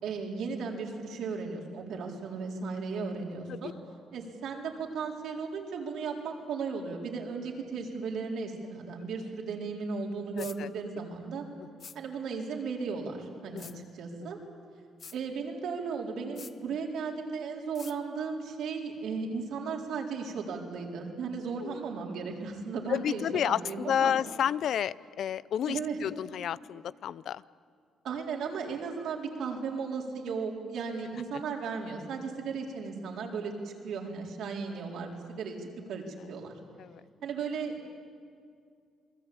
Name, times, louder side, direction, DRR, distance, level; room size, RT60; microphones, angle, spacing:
voice 1, 0.0-3.7 4.1-11.4 11.9-14.4 15.1-24.1 25.7-26.0 28.0-36.6 37.2-37.9, right 5 dB, 75° right, 0 dB, 4.3 m, -36 dB
voice 2, 10.4-10.7 11.6-11.7 13.5-13.8 14.2-14.3 21.6-21.8 22.9-27.4 36.8-37.0, left 9 dB, 70° left, 18 dB, 0.5 m, -31 dB
sound 1, 10.4-10.6 11.8-12.0 13.6-13.8 15.0-15.2 16.4-16.5 17.7-18.0, left 6 dB, 45° left, 1.0 m, -45 dB
28.0 x 20.5 x 8.8 m, 2.2 s
cardioid pair, 90°, 0 cm